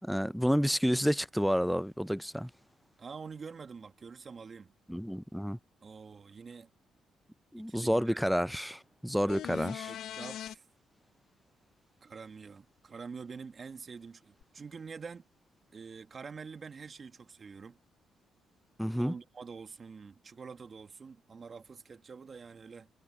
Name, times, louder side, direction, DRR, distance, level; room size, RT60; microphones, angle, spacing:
voice 1, 0.0-2.5 4.9-5.6 7.5-9.9 18.8-19.1, equal, ahead, 0.4 m, -30 dB
voice 2, 3.0-4.7 5.8-6.7 7.6-8.2 9.2-9.6 9.9-10.6 12.0-15.3 15.7-17.8 19.0-22.9, right 5 dB, 40° right, 1.6 m, -46 dB
sound 1, 9.3-10.5 14.4-14.5, left 11 dB, 75° left, 0.5 m, -40 dB
cardioid pair, 90°, 0 cm